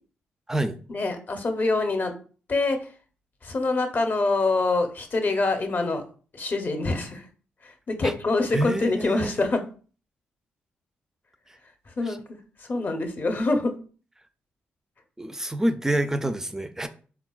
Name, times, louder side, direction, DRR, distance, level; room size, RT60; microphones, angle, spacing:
voice 1, 0.9-2.1 2.5-2.8 3.4-6.0 6.3-7.2 7.9-9.6 12.0-12.4 12.7-13.7, left 3 dB, 40° left, 0.6 m, -25 dB
voice 2, 8.5-9.3 12.0-12.2 15.2-16.9, right 1 dB, 10° right, 0.3 m, -27 dB
3.7 x 2.3 x 2.3 m
supercardioid pair, 55°, 5 cm